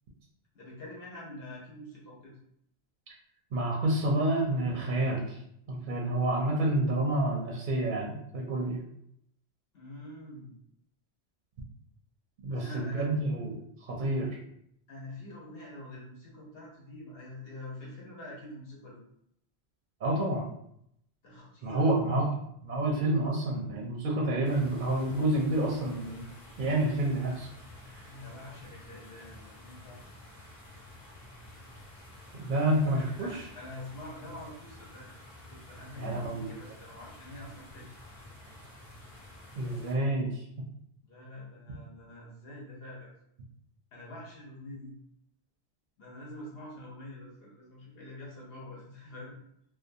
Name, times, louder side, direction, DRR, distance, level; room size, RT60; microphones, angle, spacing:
voice 1, 0.5-2.3 9.7-10.6 12.5-13.1 14.9-19.0 21.2-21.9 28.1-30.2 32.7-32.8 33.2-37.9 41.0-43.1 43.9-44.9 46.0-49.4, left 1 dB, 70° left, -4 dB, 1.0 m, -46 dB
voice 2, 3.5-5.4 5.7-8.8 12.4-13.6 13.9-14.4 20.0-20.5 21.6-22.3 22.6-26.2 26.6-27.5 32.3-33.4 36.0-36.5 39.6-40.4, right 1 dB, 60° right, -2 dB, 0.6 m, -28 dB
sound 1, 24.4-39.9, left 1 dB, 35° left, 0.9 m, -50 dB
2.5 x 2.2 x 2.6 m, 0.74 s
omnidirectional pair, 1.1 m